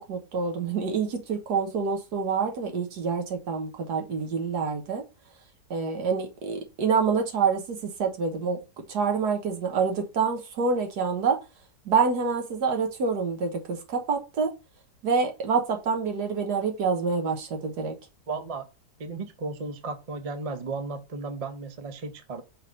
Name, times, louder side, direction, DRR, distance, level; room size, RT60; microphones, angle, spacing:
voice 1, 0.1-5.0 5.7-8.6 8.9-11.4 11.9-14.5 15.0-18.0, right 5 dB, 75° right, 1.7 m, -27 dB
voice 2, 18.3-18.7 19.0-22.4, right 3 dB, 40° right, 0.5 m, -34 dB
5.5 x 3.5 x 5.2 m
omnidirectional pair, 1.8 m